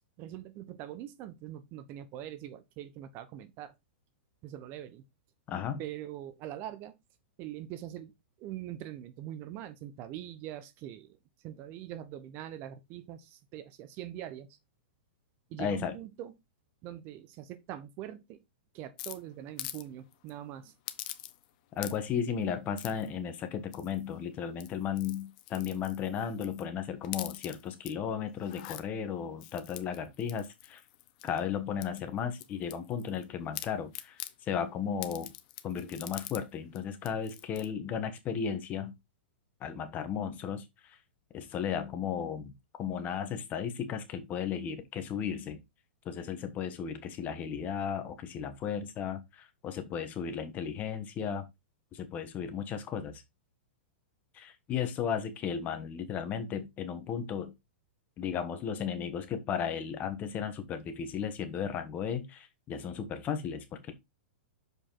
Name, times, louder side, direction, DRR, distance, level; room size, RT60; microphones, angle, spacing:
voice 1, 0.2-3.7 4.4-5.0 5.8-6.9 7.4-8.1 8.4-14.6 15.5-16.3 16.8-18.4 18.7-20.7, right 12 dB, 40° right, 1.0 m, -43 dB
voice 2, 5.5-5.8 15.6-16.0 21.7-30.8 31.2-35.3 35.6-38.9 39.6-41.0 41.3-42.5 42.8-45.6 46.0-51.5 51.9-53.2 54.3-57.5 58.2-63.9, left 7 dB, 30° left, 1.3 m, -35 dB
sound 1, 19.0-19.8 20.1-20.3 20.9-21.5 21.8-22.2 22.8-23.1 23.7-24.1 24.5-26.7 27.0-27.9 28.4-28.8 29.4-31.4 31.8-33.2 33.5-34.3 35.0-36.4 36.8-36.9 37.0-37.7, left 15 dB, 45° left, 0.8 m, -44 dB
6.7 x 5.1 x 3.9 m
hypercardioid pair, 135°, 6 cm